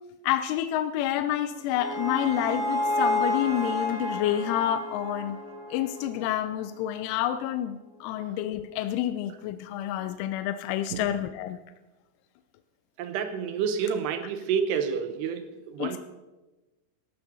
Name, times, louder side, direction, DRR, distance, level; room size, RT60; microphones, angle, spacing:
voice 1, 0.2-5.4 5.7-11.6 15.8-16.0, left 12 dB, 85° left, 9 dB, 3.0 m, -29 dB
sound 1, 1.3-6.5, left 1 dB, 5° left, 1.6 m, -30 dB
voice 2, 13.0-16.0, right 7 dB, 80° right, 8 dB, 2.5 m, -29 dB
18.5 x 14.0 x 2.7 m, 1.1 s
omnidirectional pair, 5.5 m